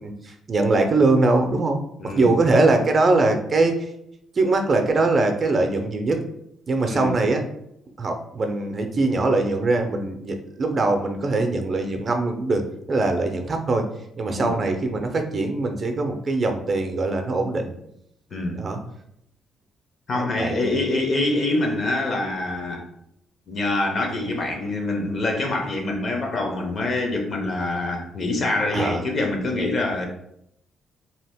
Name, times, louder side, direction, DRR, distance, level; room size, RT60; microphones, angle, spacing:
voice 1, 0.0-3.9 4.4-6.2 6.7-7.4 8.0-13.9 14.2-17.7 18.6-18.8 20.1-20.8 28.7-29.0, right 2 dB, 40° right, 0.5 m, -22 dB
voice 2, 2.0-2.4 6.8-7.2 14.3-14.6 18.3-18.7 20.1-22.9 23.5-30.1, left 2 dB, 50° left, 0.7 m, -25 dB
2.8 x 2.5 x 3.4 m
cardioid pair, 90°, 0 cm